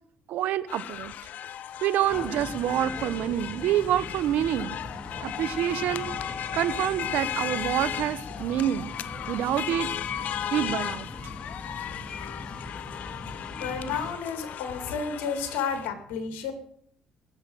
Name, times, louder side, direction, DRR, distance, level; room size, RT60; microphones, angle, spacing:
voice 1, 0.3-1.1 1.8-4.8 5.2-6.1 6.5-8.9 9.3-9.9 10.5-11.1, right 12 dB, 70° right, 17 dB, 0.8 m, -27 dB
sound 1, 0.7-15.9, left 10 dB, 65° left, 0.7 m, -36 dB
sound 2, 2.1-14.1, left 2 dB, 30° left, 2.9 m, -41 dB
voice 2, 13.6-16.5, left 6 dB, 80° left, 7 dB, 2.4 m, -31 dB
17.5 x 7.3 x 7.8 m, 0.65 s
supercardioid pair, 80°, 3 cm